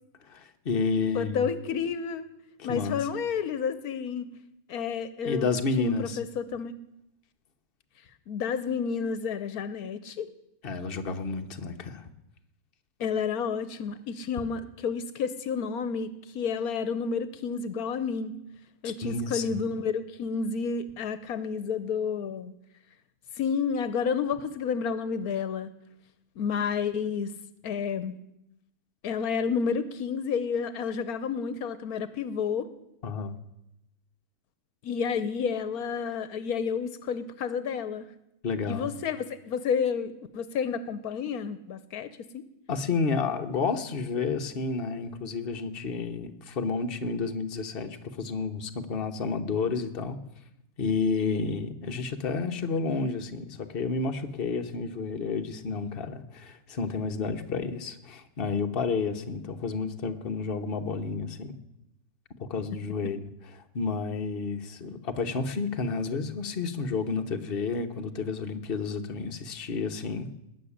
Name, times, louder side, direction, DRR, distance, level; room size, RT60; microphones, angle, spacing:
voice 1, 0.2-1.5 2.6-3.0 5.2-6.2 10.6-12.1 18.8-19.6 33.0-33.4 38.4-38.9 42.7-50.2 50.8-61.6 62.4-70.3, left 4 dB, 40° left, 1.2 m, -31 dB
voice 2, 1.1-2.3 2.6-4.3 4.7-6.7 8.3-10.3 13.0-18.3 18.8-22.5 23.4-25.7 26.4-27.3 27.6-28.2 29.0-32.7 34.8-38.1 38.7-42.4, left 6 dB, 75° left, 1.3 m, -30 dB
19.5 x 6.6 x 9.9 m
omnidirectional pair, 1.6 m